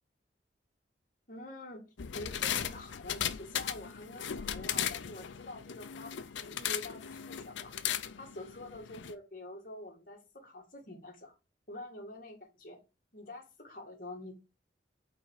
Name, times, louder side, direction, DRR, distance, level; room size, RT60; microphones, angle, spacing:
voice 1, 1.3-1.8 2.1-7.7 8.2-11.3 11.7-12.8 13.1-14.3, left 1 dB, 50° left, 2.1 m, -46 dB
sound 1, 2.0-9.1, left 9 dB, 90° left, 0.6 m, -37 dB
5.8 x 4.2 x 4.9 m
head